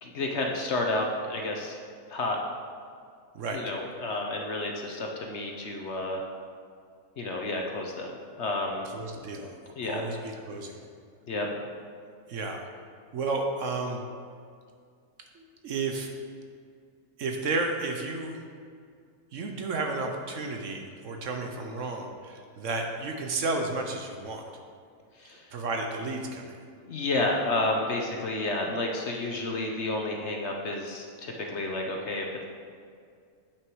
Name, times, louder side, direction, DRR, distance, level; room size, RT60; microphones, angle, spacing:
voice 1, 0.0-1.8 2.1-2.4 3.5-6.2 7.2-8.9 9.8-10.0 11.3-11.5 25.2-25.5 26.9-32.4, left 2 dB, 55° left, 1 dB, 1.0 m, -31 dB
voice 2, 8.9-9.5 9.8-10.8 12.0-12.7 13.1-14.0 15.3-16.1 17.2-18.4 19.3-24.4 25.5-26.6, right 3 dB, 60° right, 3 dB, 1.0 m, -32 dB
8.5 x 6.1 x 4.7 m, 2.2 s
omnidirectional pair, 1.6 m